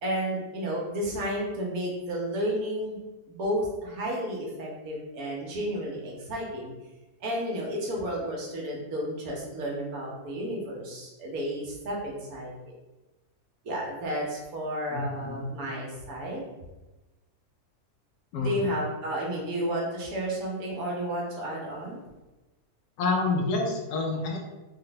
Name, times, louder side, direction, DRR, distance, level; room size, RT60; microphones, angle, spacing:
voice 1, 0.0-3.0 3.3-6.7 7.2-12.7 13.6-16.4 18.4-22.0, equal, 70° right, -2 dB, 1.4 m, -32 dB
voice 2, 14.9-15.5 18.3-18.5 23.0-24.5, left 3 dB, 90° left, 1 dB, 1.2 m, -28 dB
3.6 x 2.2 x 4.0 m, 1.1 s
omnidirectional pair, 1.6 m